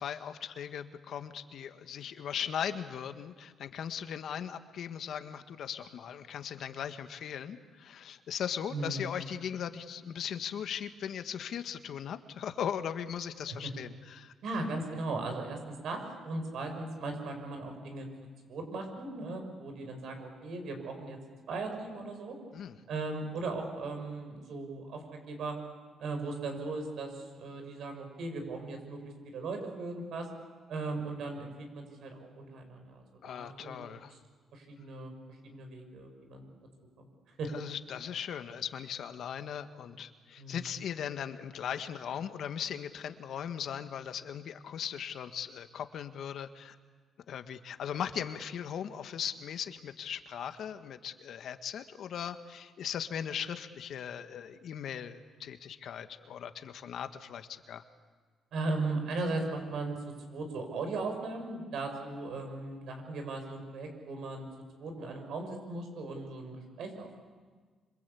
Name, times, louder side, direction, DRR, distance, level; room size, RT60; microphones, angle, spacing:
voice 1, 0.0-14.3 22.5-22.8 33.2-34.2 37.5-46.8 47.3-57.8, left 8 dB, 70° left, 9 dB, 1.6 m, -38 dB
voice 2, 8.7-9.1 13.5-13.7 14.4-18.1 18.5-22.3 22.9-25.6 26.0-30.3 30.7-33.8 34.5-35.1 35.4-36.5 37.0-37.1 37.4-37.5 40.4-40.6 58.5-60.0 60.3-64.5 64.8-67.2, right 3 dB, 70° right, 5 dB, 6.7 m, -38 dB
26.5 x 26.0 x 8.5 m, 1.5 s
cardioid pair, 90°, 0 cm